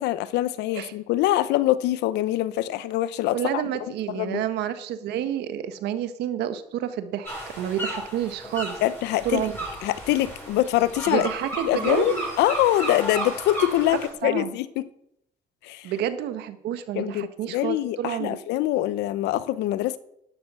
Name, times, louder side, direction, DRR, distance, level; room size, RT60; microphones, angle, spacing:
voice 1, 0.0-3.6 4.1-4.4 8.8-9.4 9.8-11.3 11.7-14.9 15.6-15.9 16.9-20.0, left 14 dB, 85° left, 0.9 m, -24 dB
voice 2, 3.3-7.3 7.5-8.8 9.2-9.6 11.0-12.3 14.2-14.6 15.8-18.4, right 10 dB, 80° right, 1.5 m, -29 dB
sound 1, 7.3-14.1, right 1 dB, 10° left, 7.5 m, -34 dB
12.0 x 11.0 x 6.3 m
cardioid pair, 110°, 17 cm